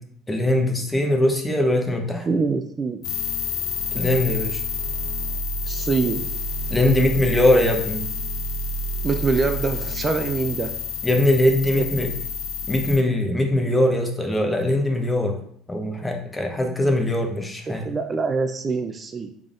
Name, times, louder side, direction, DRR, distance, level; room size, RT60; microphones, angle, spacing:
voice 1, 0.3-2.3 3.9-4.6 6.7-8.1 11.0-12.1 12.6-15.4 15.7-17.9, left 1 dB, 15° left, 3 dB, 0.7 m, -21 dB
voice 2, 2.3-3.0 5.7-6.3 9.0-10.7 11.7-11.8 17.7-19.3, right 4 dB, 35° right, 7 dB, 0.3 m, -24 dB
sound 1, 3.0-13.0, left 3 dB, 65° left, 0.8 m, -29 dB
3.6 x 3.5 x 2.4 m, 0.63 s
hypercardioid pair, 75°, 0 cm